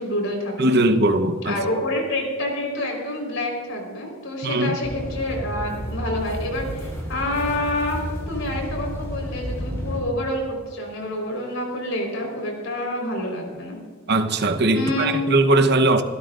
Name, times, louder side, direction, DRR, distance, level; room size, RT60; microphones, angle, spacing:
voice 1, 0.0-0.8 1.4-13.8 14.7-15.3, left 1 dB, 65° left, 1 dB, 4.1 m, -28 dB
voice 2, 0.6-1.6 4.4-4.8 14.1-16.0, right 2 dB, 50° right, 8 dB, 0.9 m, -19 dB
sound 1, 4.8-10.0, equal, 15° left, 4.0 m, -31 dB
25.5 x 12.5 x 2.5 m, 1.5 s
head